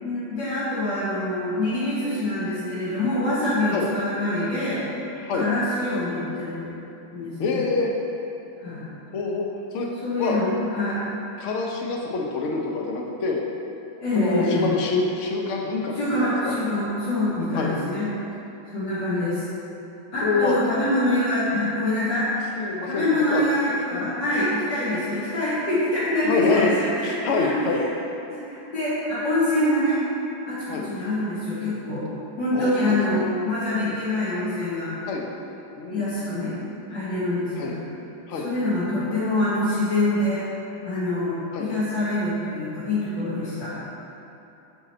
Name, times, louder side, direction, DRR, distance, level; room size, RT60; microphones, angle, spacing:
voice 1, 0.0-4.8 5.3-6.7 7.1-7.6 8.6-8.8 10.0-11.1 14.0-14.7 15.9-18.1 18.7-19.4 20.1-22.3 22.8-27.8 28.3-30.0 30.5-32.1 32.4-34.9 35.9-36.6 36.9-37.8 38.3-40.5 40.8-43.7, left 1 dB, 65° left, -13 dB, 2.1 m, -25 dB
voice 2, 5.2-5.5 7.4-7.9 9.1-9.5 9.7-9.9 10.2-10.4 11.4-13.4 14.1-16.5 17.5-17.7 20.2-20.5 22.6-23.4 23.9-24.1 26.2-26.7 27.0-27.8 30.7-30.8 32.5-33.2 33.7-33.9 35.1-35.2 35.8-36.0 37.6-37.8 38.3-38.5 41.5-41.7, left 4 dB, 80° left, -1 dB, 0.6 m, -26 dB
7.4 x 5.0 x 4.3 m, 2.9 s
omnidirectional pair, 2.2 m